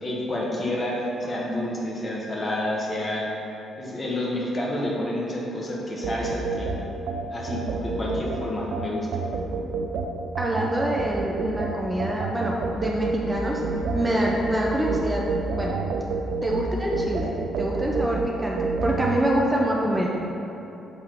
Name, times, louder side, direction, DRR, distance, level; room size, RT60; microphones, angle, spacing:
voice 1, 0.0-3.3 3.8-6.7 7.3-9.1, left 1 dB, 30° left, -4 dB, 1.3 m, -29 dB
sound 1, 6.0-19.2, right 4 dB, 75° right, 0.4 m, -29 dB
voice 2, 10.4-15.3 15.5-15.8 16.4-20.1, right 1 dB, 15° right, -2 dB, 0.6 m, -26 dB
6.6 x 3.6 x 4.5 m, 3.0 s
cardioid pair, 90°, 0 cm